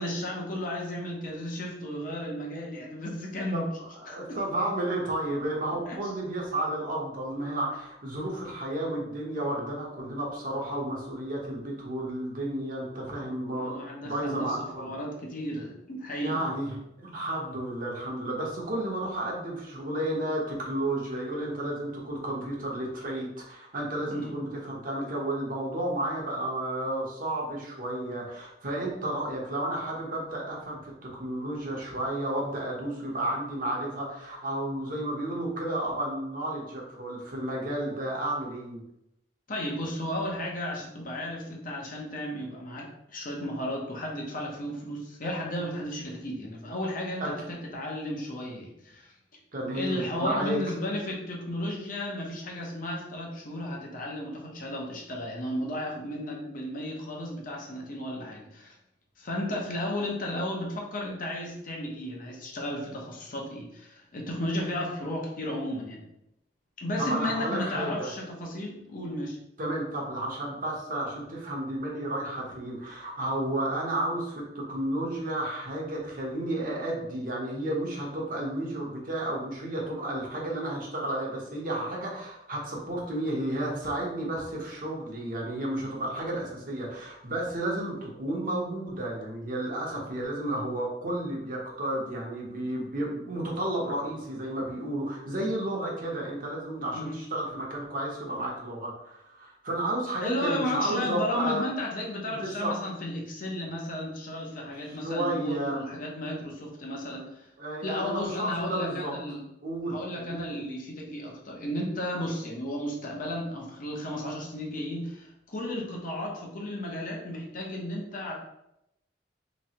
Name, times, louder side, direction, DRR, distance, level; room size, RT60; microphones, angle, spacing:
voice 1, 0.0-3.6 4.1-4.4 5.8-6.0 13.5-16.3 24.1-24.4 39.5-47.3 47.7-49.1 49.7-58.7 59.2-66.0 66.8-69.4 96.9-97.1 100.2-107.5 107.8-109.4 109.9-118.3, left 1 dB, 50° left, -1 dB, 0.8 m, -34 dB
voice 2, 3.5-14.9 16.2-38.8 47.2-47.6 49.5-50.6 67.0-68.1 69.6-101.7 102.3-102.7 104.9-105.8 107.6-109.1 109.6-110.6, right 1 dB, 55° right, -3 dB, 0.9 m, -32 dB
3.2 x 3.0 x 2.9 m, 0.83 s
head